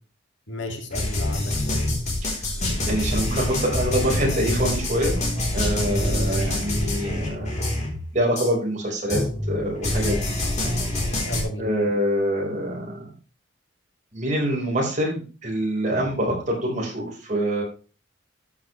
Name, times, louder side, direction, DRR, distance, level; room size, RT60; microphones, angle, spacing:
voice 1, 0.5-1.8 6.3-6.6 11.2-11.7, left 1 dB, 65° left, 4 dB, 2.5 m, -33 dB
sound 1, 0.9-8.0 8.3-8.5 9.1-11.4, left 1 dB, 35° left, 3.8 m, -26 dB
voice 2, 2.9-5.2 5.5-7.5 8.1-9.2 9.5-10.2 10.7-10.8 11.6-13.0 14.1-17.6, equal, 35° right, -1 dB, 4.8 m, -25 dB
13.5 x 8.9 x 3.3 m, 0.34 s
head